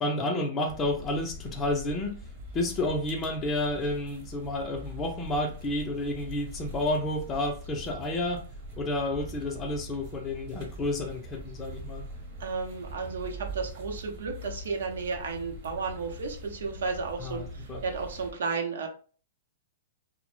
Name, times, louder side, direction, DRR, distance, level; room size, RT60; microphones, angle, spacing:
voice 1, 0.0-2.2 2.5-8.4 8.8-12.0 17.2-17.8, left 1 dB, 20° left, 0.4 m, -30 dB
sound 1, 0.7-18.3, right 1 dB, 45° right, 0.8 m, -43 dB
voice 2, 12.4-18.9, right 4 dB, 80° right, 0.6 m, -33 dB
2.0 x 2.0 x 3.0 m
hypercardioid pair, 145°, 0 cm